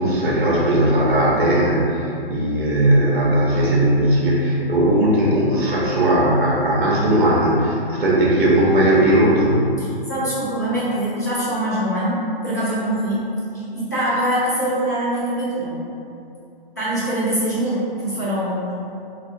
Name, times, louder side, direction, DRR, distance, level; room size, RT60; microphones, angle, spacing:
voice 1, 0.0-9.7, right 1 dB, 60° right, -4 dB, 0.9 m, -18 dB
voice 2, 9.8-13.3 13.7-15.8 16.8-18.7, right 1 dB, 20° left, -10 dB, 0.4 m, -23 dB
4.4 x 2.4 x 2.6 m, 2.6 s
hypercardioid pair, 180°, 30 cm